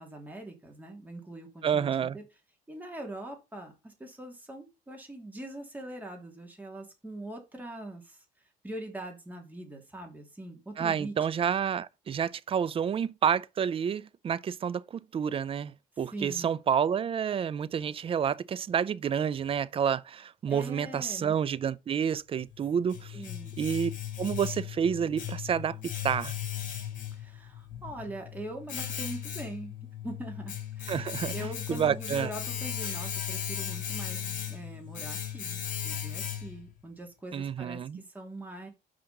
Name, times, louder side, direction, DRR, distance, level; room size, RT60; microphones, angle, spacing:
voice 1, 0.0-2.2 2.7-8.2 8.6-11.5 16.1-16.6 20.5-21.3 23.1-23.6 27.2-38.7, right 1 dB, 10° right, 2.8 m, -42 dB
voice 2, 1.6-2.2 10.8-23.2 23.6-23.9 24.2-25.8 26.0-26.3 30.9-32.3 37.3-38.0, right 8 dB, 35° right, 0.5 m, -29 dB
Domestic sounds home sounds, 22.4-36.7, left 10 dB, 50° left, 2.1 m, -37 dB
5.8 x 5.1 x 5.3 m
cardioid pair, 110°, 17 cm